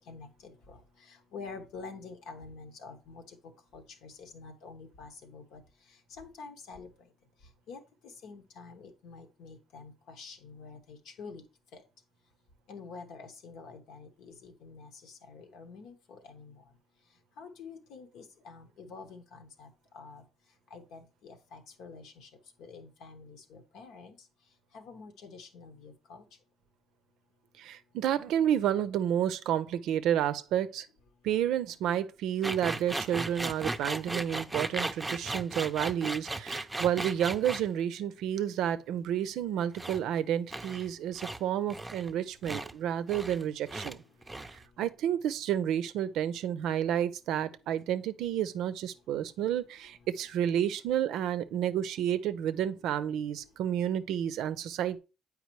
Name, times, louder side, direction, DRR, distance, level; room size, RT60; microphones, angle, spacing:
voice 1, 0.1-0.8 1.1-3.4 3.7-5.6 6.2-6.9 7.7-7.8 8.2-11.4 11.7-11.8 12.7-16.6 17.4-19.7 19.9-20.2 20.7-22.3 22.6-24.1 24.7-26.2, left 4 dB, 80° left, 1.1 m, -47 dB
voice 2, 27.6-30.9 31.2-44.0 44.8-55.0, right 10 dB, 75° right, 0.5 m, -30 dB
sound 1, 32.4-37.7 39.7-40.0 40.5-40.9 41.2-41.4 41.7-42.1 42.4-42.7 43.1-43.4 43.7-44.0 44.2-44.6, right 2 dB, 15° right, 0.5 m, -36 dB
8.1 x 4.8 x 3.1 m
supercardioid pair, 80°, 0 cm